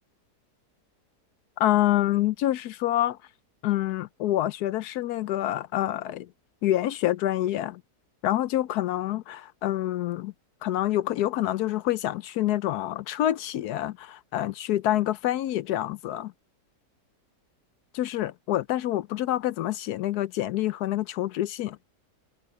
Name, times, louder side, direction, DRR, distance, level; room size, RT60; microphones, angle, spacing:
voice 1, 1.6-3.2 3.6-6.3 6.6-7.8 8.2-10.3 10.6-16.3 17.9-21.8, left 13 dB, 75° left, 1.1 m, -27 dB
omnidirectional pair, 1.7 m